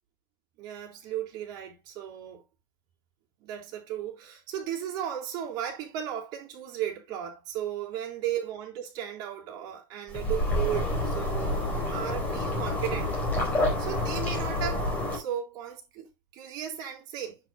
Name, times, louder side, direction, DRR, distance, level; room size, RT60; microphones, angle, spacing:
voice 1, 0.6-2.4 3.4-11.6 11.9-13.1 13.8-17.4, right 10 dB, 35° right, 4.0 m, -35 dB
sound 1, 10.1-15.2, left 1 dB, 15° left, 4.1 m, -28 dB
10.0 x 8.1 x 2.3 m
supercardioid pair, 175°, 12 cm